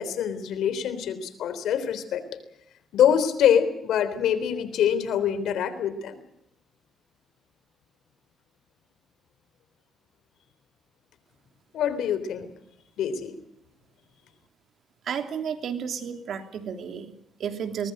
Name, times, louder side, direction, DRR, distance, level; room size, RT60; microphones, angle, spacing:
voice 1, 0.0-2.2 2.9-6.2 11.7-12.5 13.0-13.4, left 9 dB, 80° left, 12 dB, 3.6 m, -24 dB
voice 2, 15.0-17.9, right 7 dB, 65° right, 7 dB, 2.9 m, -32 dB
22.5 x 20.0 x 7.9 m, 0.81 s
cardioid pair, 90°, 0 cm